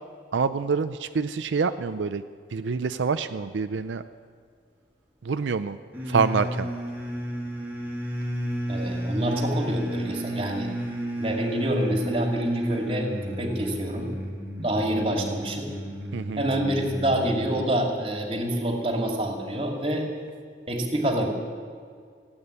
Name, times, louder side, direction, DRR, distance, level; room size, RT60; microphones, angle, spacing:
voice 1, 0.3-2.2 2.5-4.0 5.2-5.8 6.1-6.7 16.1-16.4, right 5 dB, 90° right, 10 dB, 0.5 m, -26 dB
sound 1, 5.9-17.8, equal, 10° right, 2.6 m, -32 dB
voice 2, 8.7-10.7 11.2-14.1 14.6-15.7 16.4-20.1 20.7-21.3, right 1 dB, 30° right, 2 dB, 2.4 m, -27 dB
16.5 x 8.8 x 9.9 m, 2.1 s
head